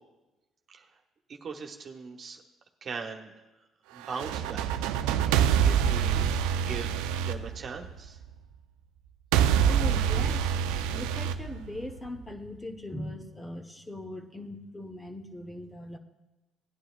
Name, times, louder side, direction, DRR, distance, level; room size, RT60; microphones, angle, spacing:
voice 1, 1.3-2.4 2.8-3.3 3.9-4.7 5.6-8.2, right 5 dB, 50° right, 3 dB, 1.2 m, -40 dB
sound 1, 4.0-8.2 9.3-12.2, right 8 dB, 80° right, 0.4 m, -26 dB
voice 2, 9.7-10.5 10.9-16.0, left 1 dB, 20° left, 4 dB, 1.1 m, -40 dB
17.5 x 9.8 x 2.4 m, 1.0 s
hypercardioid pair, 60°, 0 cm